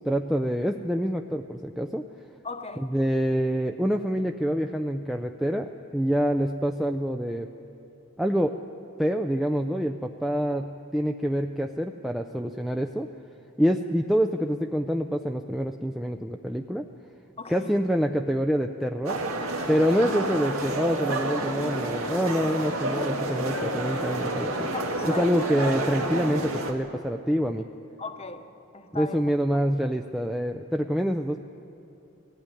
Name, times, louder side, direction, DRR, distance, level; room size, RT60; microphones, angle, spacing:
voice 1, 0.0-2.1 2.8-7.5 8.2-8.6 9.0-13.1 13.6-16.9 17.5-19.2 19.7-24.7 25.0-27.6 28.9-31.4, equal, ahead, 0.4 m, -26 dB
voice 2, 2.4-2.9 17.4-17.7 24.7-25.3 28.0-28.5 28.7-29.2, left 4 dB, 30° left, 0.9 m, -37 dB
sound 1, 19.0-26.7, right 1 dB, 75° right, 1.9 m, -29 dB
18.5 x 15.0 x 9.8 m
head